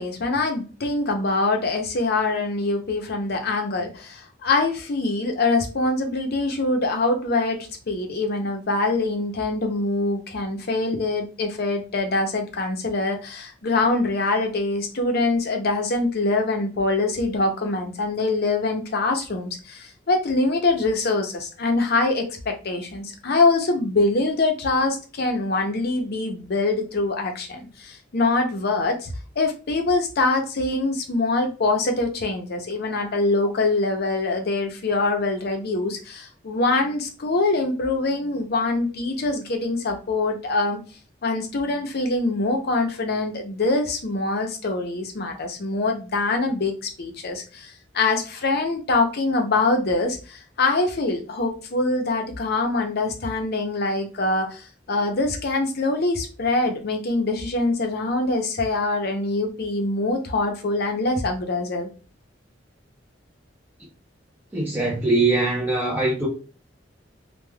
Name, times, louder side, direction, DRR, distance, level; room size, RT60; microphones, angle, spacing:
voice 1, 0.0-29.1 29.4-40.8 41.2-61.9, left 3 dB, 55° left, 0.6 m, -24 dB
voice 2, 64.5-66.3, right 2 dB, 10° right, 0.6 m, -22 dB
3.3 x 2.2 x 2.2 m
head